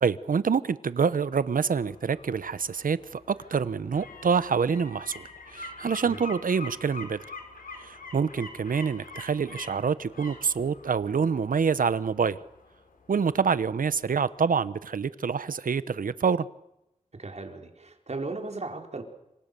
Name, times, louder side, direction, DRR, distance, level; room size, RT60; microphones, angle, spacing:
voice 1, 0.0-5.2 5.5-7.2 7.8-12.4 13.1-16.5, right 6 dB, 85° right, 1.0 m, -26 dB
sound 1, 1.1-13.9 14.2-14.3, left 3 dB, 90° left, 5.4 m, -46 dB
voice 2, 17.1-19.0, right 3 dB, 55° right, 4.5 m, -36 dB
27.0 x 25.0 x 6.9 m
wide cardioid pair, 70°, 14 cm